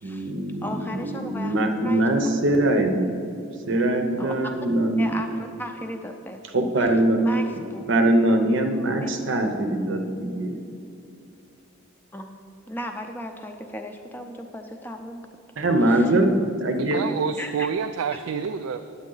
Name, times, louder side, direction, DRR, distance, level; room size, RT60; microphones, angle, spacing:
voice 1, 0.0-3.4 3.7-5.1 6.5-7.3 7.9-10.6 15.6-17.0, right 1 dB, 60° right, 5 dB, 0.7 m, -22 dB
voice 2, 0.6-1.5 1.8-2.1 4.2-4.3 5.0-6.4 6.8-6.9 7.2-7.4 7.7-7.8 8.9-9.1 12.1-15.2 15.8-16.1 17.4-17.7, left 1 dB, 10° left, 5 dB, 0.5 m, -36 dB
voice 3, 16.8-18.8, right 6 dB, 85° right, 8 dB, 0.3 m, -28 dB
9.8 x 8.1 x 3.9 m, 2.5 s
head